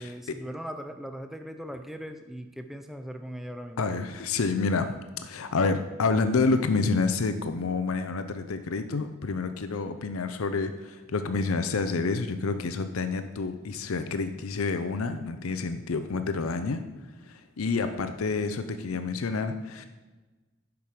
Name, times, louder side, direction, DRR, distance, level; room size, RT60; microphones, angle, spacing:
voice 1, 0.0-3.9, equal, ahead, 7 dB, 0.4 m, -39 dB
voice 2, 3.8-5.0 5.2-16.8 17.3-19.9, left 4 dB, 80° left, 9 dB, 0.6 m, -28 dB
7.0 x 6.0 x 4.9 m, 1.2 s
head